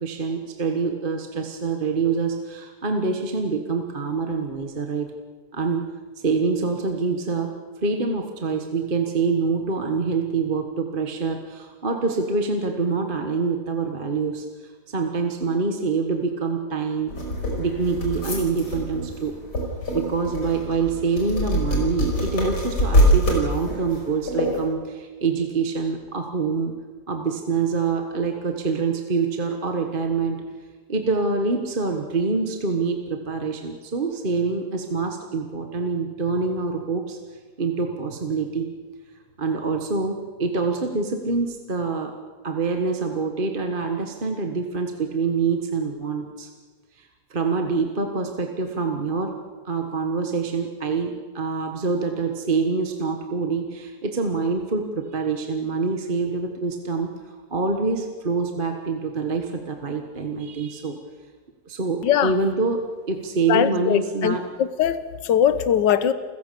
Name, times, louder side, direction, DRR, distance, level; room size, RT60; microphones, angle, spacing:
voice 1, 0.0-5.1 5.5-5.9 6.2-7.5 7.8-14.5 14.9-17.2 17.6-19.3 19.9-26.7 27.1-30.4 30.9-37.2 37.6-38.7 39.4-42.1 42.4-46.5 47.0-49.4 49.6-57.1 57.5-61.0 61.7-64.5, right 4 dB, 30° right, 4 dB, 1.5 m, -25 dB
sound 1, 17.1-24.6, equal, 70° left, 5.4 m, -24 dB
voice 2, 63.5-66.1, left 9 dB, 90° left, 13 dB, 1.6 m, -21 dB
29.0 x 15.5 x 6.9 m, 1.5 s
omnidirectional pair, 1.9 m